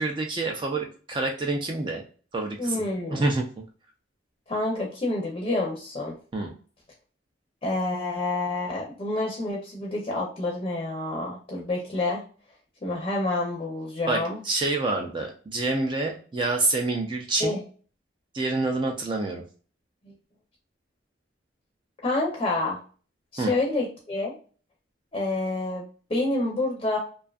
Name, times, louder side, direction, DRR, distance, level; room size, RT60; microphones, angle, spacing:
voice 1, 0.0-2.0 2.3-2.8 3.1-3.5 6.3-6.5 14.1-17.6 18.3-19.4 23.4-23.5, right 2 dB, 25° right, 2 dB, 0.3 m, -27 dB
voice 2, 2.6-3.2 4.5-6.1 7.6-12.2 12.8-14.4 17.4-17.6 22.0-22.8 23.3-24.3 25.1-25.8 26.1-27.0, left 2 dB, 30° left, -2 dB, 0.6 m, -28 dB
2.5 x 2.3 x 2.3 m, 0.40 s
head